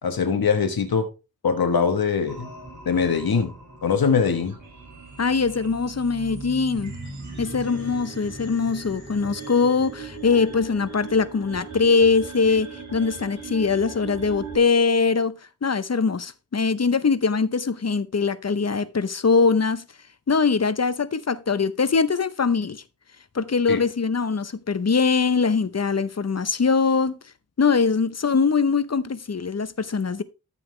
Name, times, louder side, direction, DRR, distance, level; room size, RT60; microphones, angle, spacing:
voice 1, 0.0-1.1 1.4-2.5 2.9-3.5 3.8-4.5 23.7-23.8, left 6 dB, 85° left, 1.3 m, -22 dB
sound 1, 2.3-14.6, right 3 dB, 55° right, 4.2 m, -39 dB
voice 2, 5.2-6.9 7.4-19.8 20.3-22.8 23.3-27.2 27.6-30.2, left 5 dB, 45° left, 0.8 m, -22 dB
13.5 x 5.8 x 3.2 m
wide cardioid pair, 55°, 35 cm